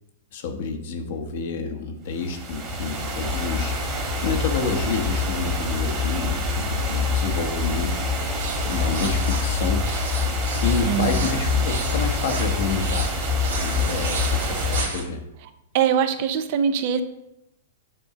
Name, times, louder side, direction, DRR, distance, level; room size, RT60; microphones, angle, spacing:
voice 1, 0.3-7.9 8.7-9.8 10.6-13.1 13.6-15.2, left 4 dB, 60° left, 4 dB, 1.0 m, -29 dB
sound 1, 2.1-14.8, left 3 dB, 30° right, 1.6 m, -25 dB
sound 2, 8.4-15.0, right 4 dB, 80° right, 1.5 m, -34 dB
voice 2, 10.8-11.3 15.7-17.0, right 8 dB, 50° right, 10 dB, 0.6 m, -22 dB
7.7 x 2.7 x 5.7 m, 0.87 s
hypercardioid pair, 125°, 0 cm